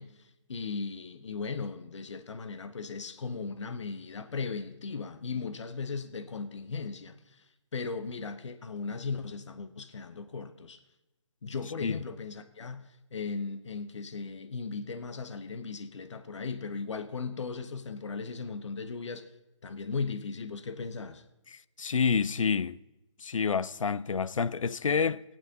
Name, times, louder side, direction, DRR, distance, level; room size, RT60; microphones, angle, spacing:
voice 1, 0.0-10.8 11.4-19.3 19.6-21.2, left 4 dB, 65° left, 0.9 m, -37 dB
voice 2, 21.8-22.8 23.2-25.2, left 5 dB, 90° left, 0.4 m, -28 dB
20.5 x 8.9 x 2.8 m
figure-of-eight pair, 155°, 16 cm